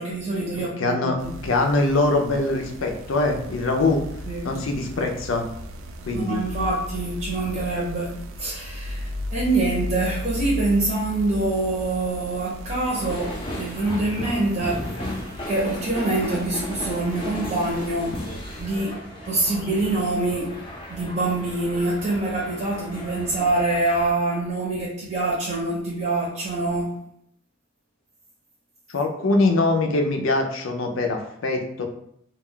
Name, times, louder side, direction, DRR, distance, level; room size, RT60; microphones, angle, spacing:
voice 1, 0.0-1.3 4.3-4.5 6.1-8.1 8.4-13.3 13.6-14.8 15.5-18.1 18.6-19.0 19.3-20.5 20.9-26.9, right 2 dB, 40° right, -5 dB, 0.8 m, -25 dB
voice 2, 0.8-1.2 1.4-4.0 4.4-5.5 6.1-6.4 28.9-31.8, left 2 dB, 85° left, 3 dB, 0.5 m, -23 dB
sound 1, 1.2-18.8, equal, 80° right, 0.4 m, -36 dB
sound 2, 12.8-24.1, left 1 dB, 25° left, 0.6 m, -35 dB
2.3 x 2.3 x 3.6 m, 0.70 s
head